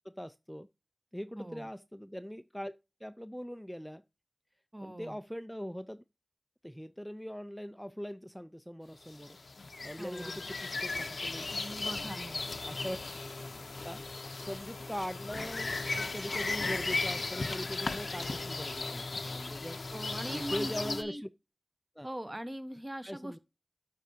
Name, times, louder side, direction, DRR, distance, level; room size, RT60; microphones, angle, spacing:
voice 1, 0.0-0.7 1.1-2.7 3.0-4.0 4.8-6.0 6.6-9.4 9.8-11.5 11.9-12.1 12.6-13.0 13.8-19.8 20.3-21.3 22.0-22.1 23.0-23.4, equal, ahead, 0.3 m, -41 dB
voice 2, 1.4-1.7 4.7-5.2 10.0-10.4 11.5-12.4 19.9-21.2 22.0-23.4, right 1 dB, 20° right, 0.8 m, -41 dB
sound 1, 9.1-21.0, left 3 dB, 85° left, 0.6 m, -36 dB
11.5 x 4.6 x 2.7 m
wide cardioid pair, 70°, 0 cm